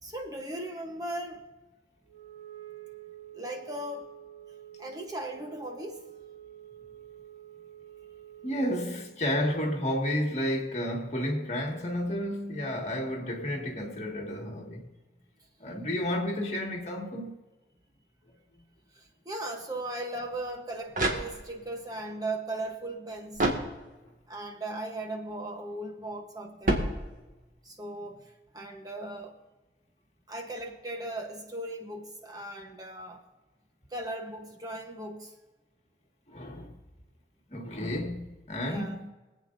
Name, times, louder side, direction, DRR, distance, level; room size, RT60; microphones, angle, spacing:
voice 1, 0.0-1.5 3.3-4.1 4.8-6.1 6.7-6.9 18.9-23.5 24.3-26.8 27.6-29.4 30.3-33.2 33.9-35.3 38.6-39.0, right 1 dB, 20° right, 1.0 m, -38 dB
Wind instrument woodwind instrument, 2.1-9.2, right 11 dB, 80° right, 1.2 m, -48 dB
voice 2, 8.4-14.9 15.6-17.4 36.3-36.8 37.5-39.1, equal, 40° left, 1.8 m, -31 dB
sound 1, 20.6-21.8 23.3-24.2 26.6-27.6, right 1 dB, 50° right, 1.9 m, -30 dB
24.5 x 8.6 x 2.6 m
head